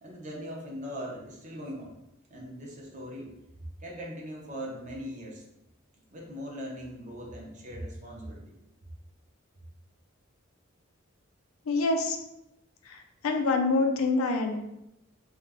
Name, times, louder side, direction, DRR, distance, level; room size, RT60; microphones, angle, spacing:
voice 1, 0.0-2.0 2.3-3.3 3.8-5.4 6.1-8.6, equal, 35° right, -2 dB, 0.5 m, -40 dB
voice 2, 11.7-12.2 12.8-14.6, left 3 dB, 90° left, 4 dB, 0.4 m, -26 dB
2.4 x 2.0 x 3.4 m, 0.87 s
head